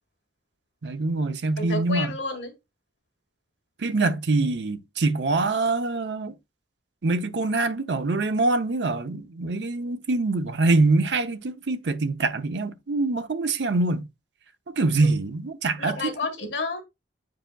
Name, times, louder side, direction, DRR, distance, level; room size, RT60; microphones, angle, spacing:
voice 1, 0.8-2.1 3.8-6.3 7.0-14.0 14.7-16.1, right 3 dB, 75° right, 0.7 m, -24 dB
voice 2, 1.6-2.5 15.0-15.1 15.8-16.8, left 3 dB, 80° left, 1.5 m, -30 dB
8.9 x 4.8 x 2.3 m
head